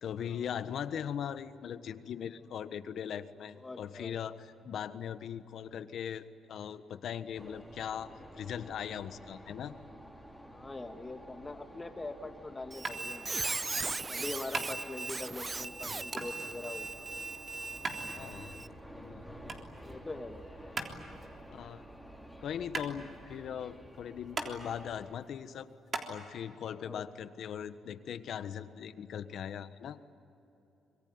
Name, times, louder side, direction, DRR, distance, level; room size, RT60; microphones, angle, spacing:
voice 1, 0.0-9.7 15.8-16.0 18.1-18.6 19.0-19.2 21.5-21.8 22.4-25.7 26.1-30.0, left 8 dB, 65° left, 11 dB, 1.3 m, -40 dB
voice 2, 3.5-4.2 10.5-13.4 14.1-17.0 19.9-20.5 26.8-27.1, left 2 dB, 20° left, 6 dB, 2.2 m, -43 dB
sound 1, 7.3-25.1, equal, 5° right, 3.6 m, -51 dB
Squeak, 12.7-18.7, right 3 dB, 25° right, 0.6 m, -38 dB
sound 2, 12.8-26.1, right 3 dB, 45° right, 3.6 m, -42 dB
26.0 x 23.0 x 9.7 m, 3.0 s
cardioid pair, 90°, 0 cm